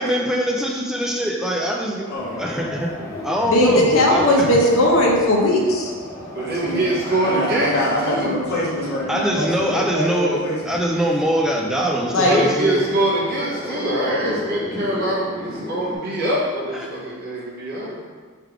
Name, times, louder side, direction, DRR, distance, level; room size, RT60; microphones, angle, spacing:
voice 1, 0.0-2.1 2.4-2.9 3.2-4.5 9.1-10.4 10.7-12.8, equal, 5° right, -1 dB, 0.4 m, -22 dB
voice 2, 2.0-2.5 6.3-10.8, left 1 dB, 50° left, -5 dB, 1.2 m, -26 dB
sound 1, 2.1-16.0, left 1 dB, 15° left, 0.7 m, -34 dB
voice 3, 3.5-5.9 12.1-12.4, left 1 dB, 70° left, -1 dB, 0.8 m, -17 dB
voice 4, 6.3-7.7 8.0-8.3 12.0-18.0, right 1 dB, 50° right, -6 dB, 1.2 m, -24 dB
3.3 x 3.3 x 4.8 m, 1.5 s
head